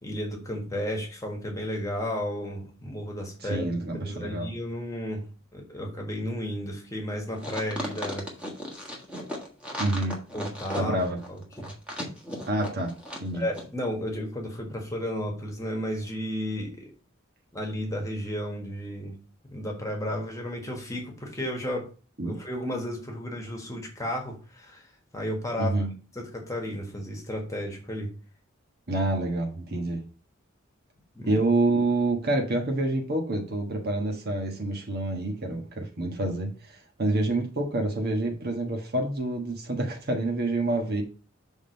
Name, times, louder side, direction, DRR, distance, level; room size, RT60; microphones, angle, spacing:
voice 1, 0.0-3.7 3.9-5.2 5.5-8.2 10.3-10.9 11.3-11.7 13.3-16.9 17.5-19.1 19.5-21.8 22.2-24.9 25.1-25.7 26.1-28.1 31.1-31.4, equal, 15° left, 1.4 m, -33 dB
voice 2, 3.4-4.5 9.8-10.2 10.7-11.2 12.5-12.9 13.2-13.4 22.2-22.3 25.6-25.9 28.9-30.0 31.3-41.0, right 2 dB, 50° right, 1.3 m, -27 dB
sound 1, 7.4-13.3 13.5-13.6, equal, 5° right, 1.5 m, -36 dB
6.3 x 3.6 x 5.2 m
head